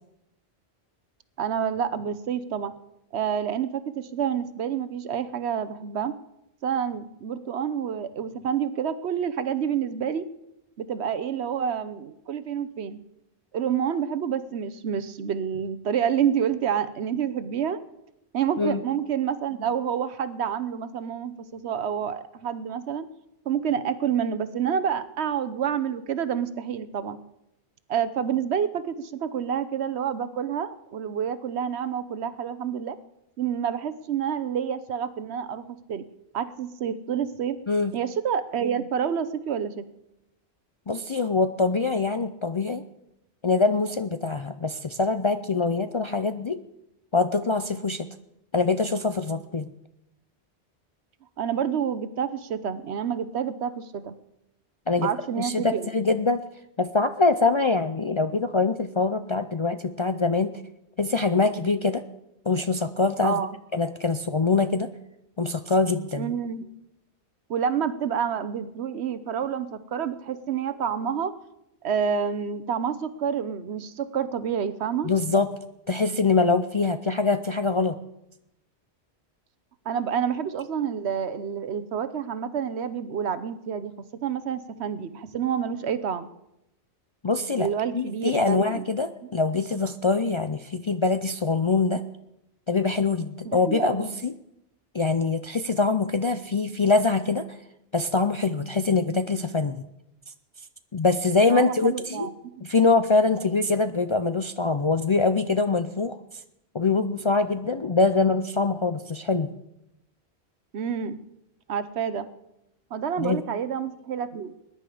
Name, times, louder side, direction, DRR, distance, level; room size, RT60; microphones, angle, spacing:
voice 1, 1.4-2.8 3.1-6.1 6.6-10.3 10.8-13.0 13.5-17.8 18.3-23.1 23.5-27.2 27.9-33.0 33.4-36.0 36.3-37.6 37.9-39.9 51.4-54.1 55.0-55.9 63.2-63.5 66.2-66.7 67.5-71.4 71.8-75.1 79.9-86.3 87.5-88.8 93.4-94.2 101.5-102.3 110.7-111.2 111.7-112.3 112.9-114.5, right 8 dB, 75° right, 13 dB, 1.1 m, -28 dB
voice 2, 40.9-42.8 43.4-46.6 47.1-48.1 48.5-49.7 54.9-55.1 55.4-56.4 56.8-60.5 61.0-62.0 62.5-63.4 63.7-64.9 65.4-66.3 75.0-75.5 75.9-78.0 87.2-87.7 87.9-92.0 92.7-94.3 94.9-97.6 97.9-99.8 100.9-102.3 102.6-106.4 106.7-109.5 113.2-113.4, left 3 dB, 40° left, 8 dB, 0.4 m, -24 dB
20.5 x 10.5 x 4.9 m, 0.85 s
omnidirectional pair, 1.1 m